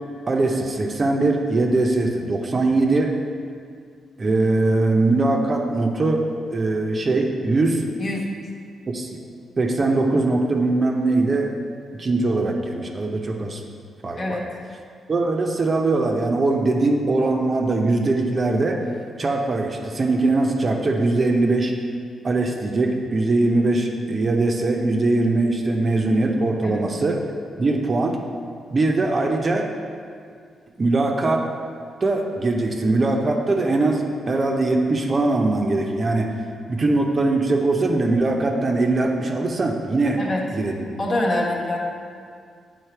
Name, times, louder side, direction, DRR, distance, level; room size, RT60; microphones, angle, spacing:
voice 1, 0.3-3.2 4.2-7.8 8.9-9.2 9.6-11.6 11.9-13.6 14.0-14.4 15.1-18.8 19.2-21.7 22.2-27.2 27.6-28.2 28.7-29.7 30.8-31.5 32.0-36.3 36.7-40.2 40.5-40.8, right 2 dB, 35° right, 2 dB, 0.7 m, -21 dB
voice 2, 8.0-8.3 14.2-14.5 26.6-26.8 40.2-40.4 41.0-41.8, left 1 dB, 40° left, -2 dB, 1.2 m, -25 dB
8.2 x 4.0 x 4.6 m, 2.1 s
cardioid pair, 100°, 0 cm